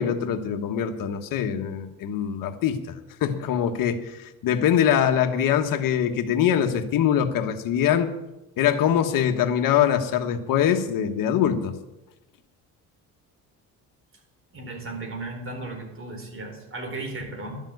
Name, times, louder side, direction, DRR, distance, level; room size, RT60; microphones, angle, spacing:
voice 1, 0.0-3.0 3.2-8.1 8.6-11.7, left 9 dB, 70° left, 1.4 m, -23 dB
voice 2, 14.5-17.6, right 2 dB, 40° right, 4.3 m, -35 dB
12.0 x 7.2 x 9.4 m
cardioid pair, 95°, 35 cm